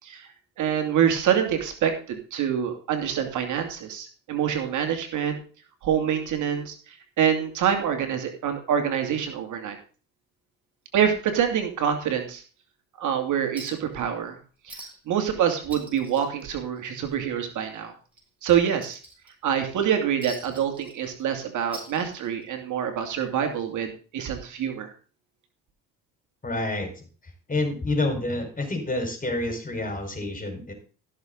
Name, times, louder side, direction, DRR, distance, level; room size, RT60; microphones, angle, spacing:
voice 1, 0.6-5.4 5.8-9.8 10.9-12.4 13.0-14.4 14.6-14.8 15.1-17.9 18.4-19.0 19.4-24.9, right 8 dB, 65° right, 5 dB, 2.6 m, -26 dB
Chink clink, 13.6-13.9 14.2-14.3 14.7-15.2 15.5-17.2 17.5-17.7 18.1-19.5 20.2-21.3 21.6-22.5 23.6-23.7, right 1 dB, 5° right, 6.6 m, -43 dB
voice 2, 26.4-26.9 27.5-30.7, left 2 dB, 25° left, 5 dB, 5.0 m, -28 dB
16.0 x 6.8 x 3.9 m, 0.38 s
supercardioid pair, 75°, 32 cm